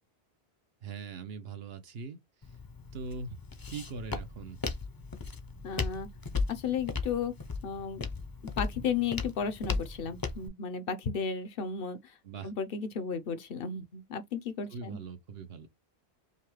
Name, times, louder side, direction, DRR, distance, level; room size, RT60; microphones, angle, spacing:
voice 1, 0.8-2.2 2.9-3.4 3.7-4.6 12.2-12.5 14.7-15.7, right 5 dB, 75° right, 1.1 m, -41 dB
Walk footsteps, 2.4-10.5, left 4 dB, 25° left, 0.5 m, -37 dB
voice 2, 5.6-6.1 6.5-7.3 7.6-8.0 8.6-12.0 12.4-15.0, left 6 dB, 65° left, 0.9 m, -34 dB
5.4 x 2.2 x 3.2 m
omnidirectional pair, 1.0 m